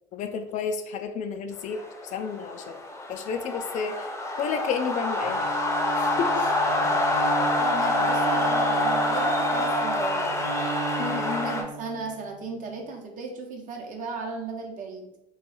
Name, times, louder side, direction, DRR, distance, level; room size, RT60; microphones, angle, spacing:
voice 1, 0.1-1.8 2.1-2.8 3.1-4.1 4.4-5.5 6.0-6.5 11.0-11.5, left 6 dB, 45° left, 7 dB, 0.4 m, -31 dB
sound 1, 1.7-11.6, left 2 dB, 15° left, 0.7 m, -26 dB
Bowed string instrument, 5.2-12.4, right 5 dB, 80° right, 0.4 m, -34 dB
voice 2, 7.6-10.3 11.0-15.1, right 4 dB, 50° right, 2 dB, 0.8 m, -36 dB
2.9 x 2.3 x 2.9 m, 0.83 s
hypercardioid pair, 70°, 17 cm